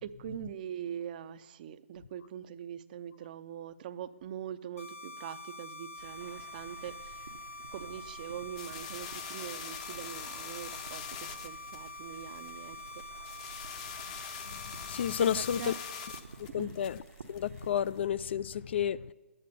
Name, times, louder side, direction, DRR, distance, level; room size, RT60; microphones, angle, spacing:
voice 1, 0.0-7.2 7.7-12.8 13.2-13.6 15.2-15.7 16.6-16.7, right 9 dB, 35° right, 0.5 m, -43 dB
sound 1, 4.8-16.2, left 2 dB, 70° left, 1.6 m, -46 dB
sound 2, 6.0-17.7, right 5 dB, 75° right, 1.0 m, -52 dB
sound 3, 8.6-18.0, left 8 dB, 30° left, 0.7 m, -45 dB
voice 2, 14.5-15.7 16.5-17.0 17.3-19.1, left 9 dB, 50° left, 0.4 m, -31 dB
12.0 x 8.6 x 6.6 m
hypercardioid pair, 150°, 8 cm